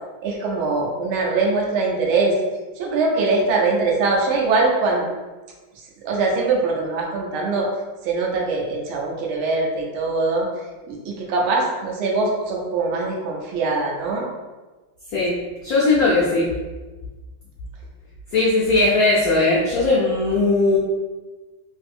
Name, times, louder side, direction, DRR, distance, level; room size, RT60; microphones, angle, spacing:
voice 1, 0.2-2.4 2.8-5.0 6.0-7.7 8.0-10.5 10.9-14.3, right 3 dB, 85° right, -1 dB, 1.5 m, -22 dB
voice 2, 15.6-16.5 18.3-20.8, left 2 dB, 85° left, -6 dB, 0.8 m, -18 dB
3.6 x 2.6 x 2.4 m, 1.2 s
omnidirectional pair, 2.3 m